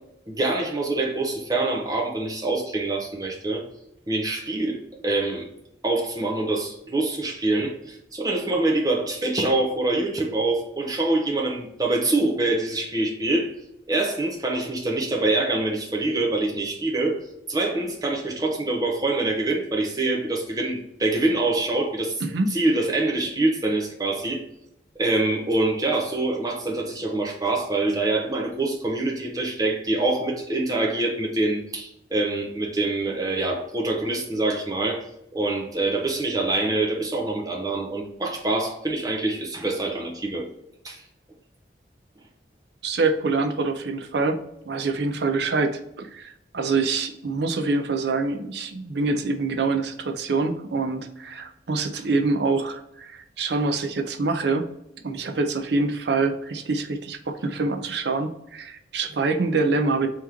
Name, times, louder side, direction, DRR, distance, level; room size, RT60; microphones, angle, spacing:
voice 1, 0.3-3.7 4.1-5.5 5.8-13.5 13.9-17.2 17.5-22.2 22.5-24.5 25.0-35.0 35.3-40.5 40.8-41.0, right 2 dB, 20° right, 1 dB, 0.7 m, -25 dB
voice 2, 22.2-22.5 42.8-54.7 55.0-60.1, right 3 dB, 70° right, 6 dB, 0.5 m, -25 dB
3.5 x 3.0 x 3.6 m, 0.79 s
head